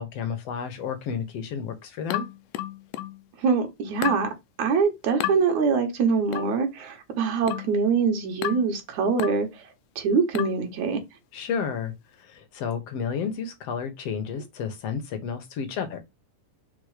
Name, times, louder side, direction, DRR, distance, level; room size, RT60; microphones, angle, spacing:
voice 1, 0.0-2.3 11.3-11.9 12.3-16.0, left 6 dB, 65° left, 1.8 m, -31 dB
sound 1, 2.1-3.2 4.0-4.3 5.2-5.4 6.3-6.6 7.5-7.8 8.4-8.7 9.2-9.5 10.3-10.6, left 13 dB, 85° left, 2.2 m, -31 dB
voice 2, 3.4-4.3 4.6-9.5 10.0-11.0, right 5 dB, 65° right, 2.8 m, -24 dB
5.3 x 4.3 x 4.9 m
omnidirectional pair, 3.7 m